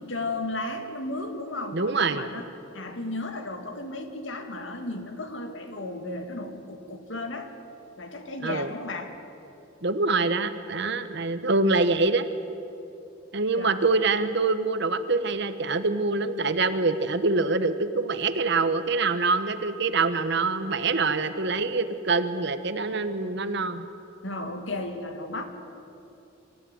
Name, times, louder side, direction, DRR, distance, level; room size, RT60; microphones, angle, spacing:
voice 1, 0.0-2.5 2.7-7.5 8.0-9.1 13.6-13.9 24.2-25.4, left 2 dB, 75° left, 6 dB, 2.1 m, -34 dB
voice 2, 1.7-2.2 8.4-8.7 9.8-12.3 13.3-23.8, right 3 dB, 65° right, 11 dB, 1.2 m, -25 dB
25.0 x 14.0 x 9.5 m, 2.8 s
head